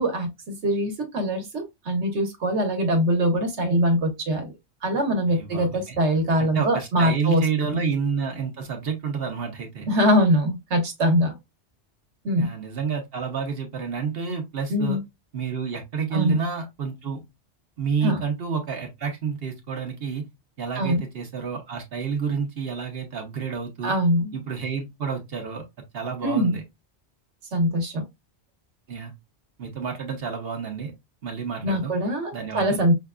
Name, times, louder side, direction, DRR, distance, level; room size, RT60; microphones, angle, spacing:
voice 1, 0.0-4.5 4.8-7.8 9.9-11.4 12.2-12.5 14.7-15.0 16.1-16.4 18.0-18.2 20.8-21.0 23.8-24.3 26.2-26.5 27.5-28.0 31.6-32.9, equal, 80° right, 1.3 m, -23 dB
voice 2, 5.3-6.0 6.4-9.9 12.4-15.0 15.3-17.2 17.8-20.2 20.6-23.9 24.3-25.6 25.9-26.6 28.9-29.1 29.6-30.9 31.2-31.9 32.3-32.8, right 6 dB, 60° right, 1.0 m, -29 dB
5.6 x 2.4 x 2.2 m
omnidirectional pair, 1.2 m